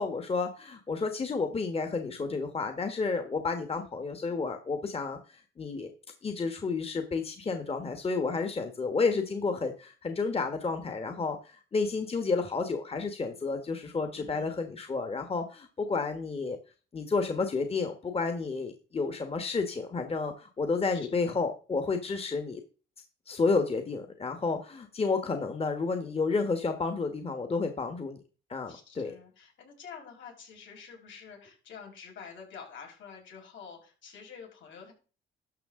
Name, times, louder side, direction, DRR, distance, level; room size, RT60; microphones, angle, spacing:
voice 1, 0.0-5.9 6.2-16.6 16.9-22.6 23.3-28.2 28.5-29.1, left 4 dB, 30° left, 6 dB, 1.4 m, -31 dB
voice 2, 14.1-14.6 20.8-21.0 21.3-21.4 28.7-34.9, left 6 dB, 70° left, 0 dB, 5.6 m, -48 dB
12.5 x 6.4 x 3.7 m, 0.35 s
cardioid pair, 90°, 20 cm